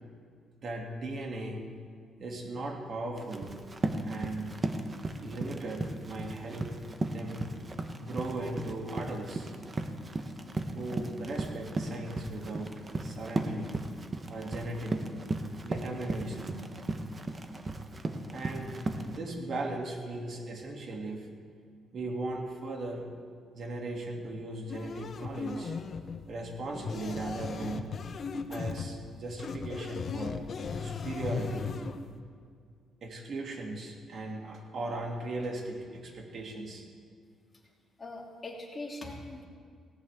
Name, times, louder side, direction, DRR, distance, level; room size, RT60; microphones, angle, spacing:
voice 1, 0.6-1.6 2.2-3.5 4.0-4.6 5.2-6.7 7.1-7.4 8.0-9.5 10.7-13.8 14.3-15.1 15.6-16.6 18.3-21.3 21.9-23.1 23.5-25.8 26.3-27.9 28.5-30.5 30.8-31.8 33.0-36.9, right 2 dB, 50° right, 0 dB, 2.7 m, -38 dB
Run, 3.2-19.2, right 2 dB, 25° right, 1.1 m, -36 dB
sound 1, 24.7-32.2, left 5 dB, 45° left, 0.9 m, -37 dB
voice 2, 38.0-39.4, left 2 dB, 25° left, -2 dB, 2.9 m, -41 dB
18.0 x 18.0 x 3.7 m, 2.1 s
cardioid pair, 105°, 0 cm